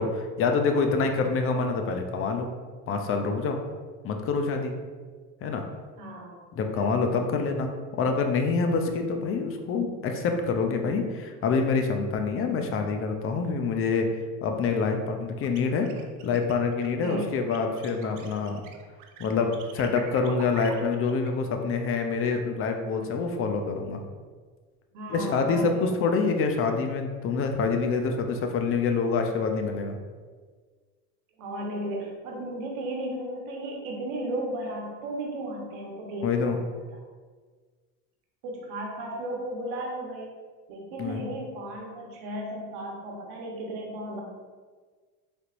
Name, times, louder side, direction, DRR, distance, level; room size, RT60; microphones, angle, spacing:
voice 1, 0.0-2.5 2.9-3.6 4.0-4.7 5.4-5.6 6.5-7.7 7.9-14.1 14.4-15.9 16.2-18.6 19.2-24.0 25.1-30.0 36.2-36.6 41.0-41.2, left 4 dB, 40° left, 5 dB, 0.6 m, -26 dB
voice 2, 6.0-6.4 6.7-7.1 17.0-17.3 24.9-25.7 31.4-36.7 38.4-40.3 40.7-44.2, right 1 dB, 80° right, -1 dB, 1.1 m, -35 dB
sound 1, 15.4-21.3, right 7 dB, 65° right, 0.6 m, -45 dB
4.1 x 3.4 x 2.5 m, 1.5 s
supercardioid pair, 100°, 34 cm